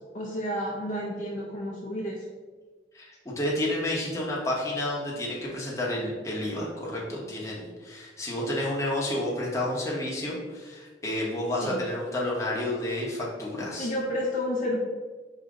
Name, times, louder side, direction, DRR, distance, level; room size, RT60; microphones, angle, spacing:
voice 1, 0.0-2.2 11.6-11.8 13.8-14.8, left 1 dB, 45° left, -4 dB, 0.6 m, -31 dB
voice 2, 2.9-13.9, left 1 dB, 15° left, -4 dB, 0.9 m, -30 dB
4.8 x 2.8 x 3.7 m, 1.4 s
head